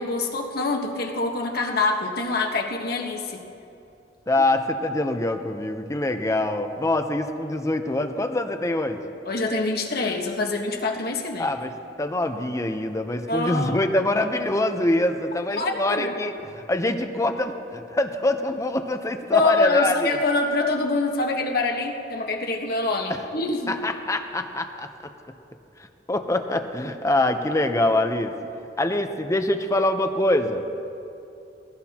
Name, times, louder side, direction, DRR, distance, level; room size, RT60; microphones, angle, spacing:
voice 1, 0.0-3.5 9.2-11.5 13.3-13.8 15.6-16.1 19.3-23.8, left 3 dB, 60° left, 1 dB, 1.4 m, -25 dB
voice 2, 4.3-9.0 11.4-11.7 12.0-20.1 23.1-23.3 23.7-25.1 26.1-28.3 28.8-30.6, left 1 dB, 20° left, 7 dB, 0.7 m, -24 dB
21.5 x 16.0 x 2.9 m, 2.7 s
head